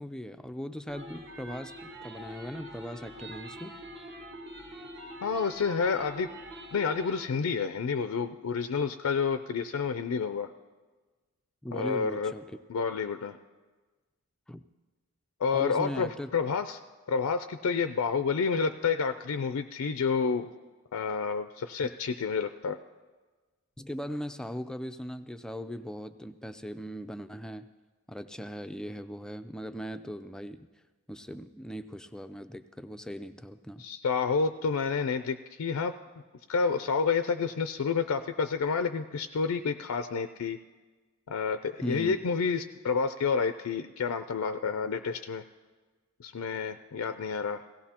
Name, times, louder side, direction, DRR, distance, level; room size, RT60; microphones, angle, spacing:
voice 1, 0.0-3.8 11.6-12.6 14.5-14.6 15.5-16.3 23.8-27.7 28.1-30.7 31.1-33.8 41.8-42.2, equal, 5° left, 9 dB, 0.3 m, -39 dB
sound 1, 0.9-7.3, right 1 dB, 55° right, 1.4 m, -44 dB
voice 2, 5.2-6.3 6.7-10.5 11.7-12.3 12.7-13.4 15.4-16.8 17.1-20.5 20.9-22.8 33.8-35.9 36.5-40.6 41.3-45.4 46.2-47.6, left 5 dB, 85° left, 9 dB, 0.4 m, -29 dB
17.0 x 17.0 x 2.9 m, 1.3 s
head